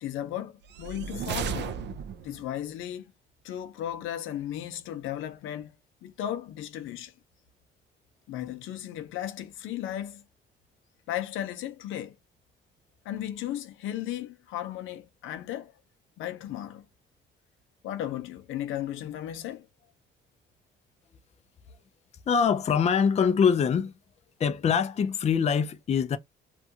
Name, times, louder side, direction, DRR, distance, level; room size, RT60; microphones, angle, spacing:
voice 1, 0.0-1.8 2.2-3.1 3.4-5.8 6.0-7.1 8.3-10.2 11.1-12.1 13.0-15.7 16.2-16.9 17.8-19.7, left 11 dB, 85° left, 0.6 m, -35 dB
sound 1, 0.7-2.5, right 7 dB, 60° right, 0.4 m, -34 dB
voice 2, 22.3-23.9 24.4-26.2, left 6 dB, 35° left, 0.4 m, -24 dB
2.6 x 2.3 x 2.7 m
cardioid pair, 90°, 20 cm